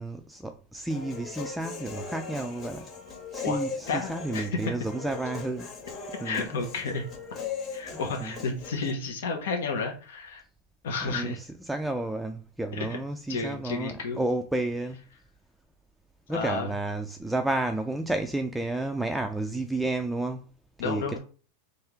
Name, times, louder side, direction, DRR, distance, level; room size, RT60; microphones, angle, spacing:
voice 1, 0.0-2.9 3.3-5.7 6.2-6.5 7.9-8.3 11.0-15.0 16.3-20.5 20.8-21.2, right 2 dB, 5° right, 0.4 m, -31 dB
Human voice, 0.9-8.9, left 5 dB, 30° left, 1.6 m, -39 dB
voice 2, 3.9-4.5 6.2-7.0 7.7-10.4 10.8-11.4 13.3-14.2 16.3-16.7 20.8-21.2, left 4 dB, 80° left, 1.0 m, -31 dB
3.6 x 2.6 x 4.5 m
hypercardioid pair, 120°, 0 cm